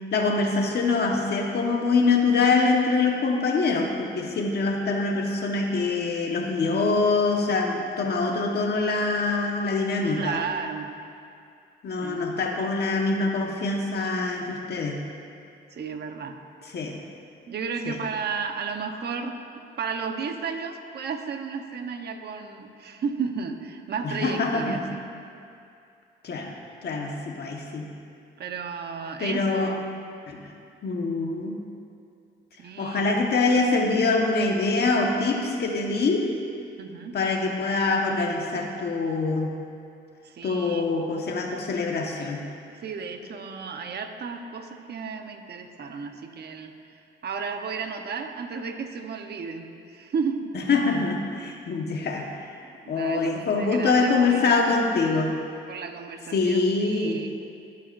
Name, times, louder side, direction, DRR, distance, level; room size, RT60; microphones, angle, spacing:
voice 1, 0.1-10.4 11.8-15.0 16.7-17.0 17.8-18.0 24.0-24.8 26.2-26.5 26.8-27.9 29.2-29.7 30.3-30.4 30.8-31.6 32.8-36.3 37.1-39.5 40.4-42.5 50.7-52.4 52.9-55.3 56.3-57.2, left 3 dB, 55° left, 1 dB, 1.4 m, -24 dB
voice 2, 10.2-10.9 12.0-12.2 15.7-16.4 17.5-19.4 19.8-25.0 28.4-29.9 32.6-33.1 36.8-37.2 40.2-40.8 42.8-46.7 47.2-50.5 52.8-54.8 55.7-57.3, right 5 dB, 55° right, 5 dB, 1.1 m, -33 dB
22.0 x 8.4 x 2.7 m, 2.5 s
cardioid pair, 90°, 20 cm